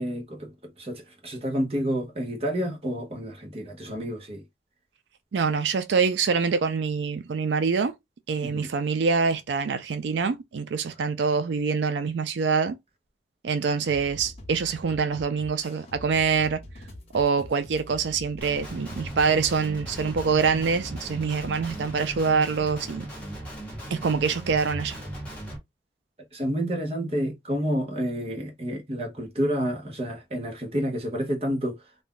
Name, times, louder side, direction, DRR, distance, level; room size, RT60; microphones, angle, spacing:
voice 1, 0.0-4.4 8.4-8.7 26.3-31.8, equal, 35° right, 0.8 m, -29 dB
voice 2, 5.3-7.9 8.3-12.8 13.4-16.6 17.1-23.0 23.9-25.0, right 5 dB, 90° right, 0.4 m, -25 dB
sound 1, 13.9-21.9, left 1 dB, 35° left, 0.8 m, -44 dB
Guitar, 18.4-25.6, right 1 dB, 10° left, 1.0 m, -38 dB
2.5 x 2.2 x 3.6 m
head